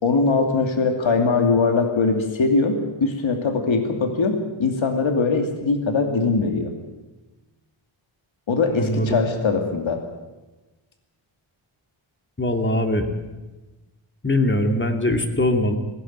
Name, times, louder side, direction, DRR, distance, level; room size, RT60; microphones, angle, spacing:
voice 1, 0.0-2.7 3.0-6.7 8.5-10.0, left 4 dB, 70° left, 4 dB, 2.7 m, -21 dB
voice 2, 8.7-9.2 12.4-13.1 14.2-15.7, left 1 dB, 25° left, 5 dB, 2.5 m, -21 dB
20.5 x 17.0 x 9.4 m, 1.1 s
wide cardioid pair, 120°, 48 cm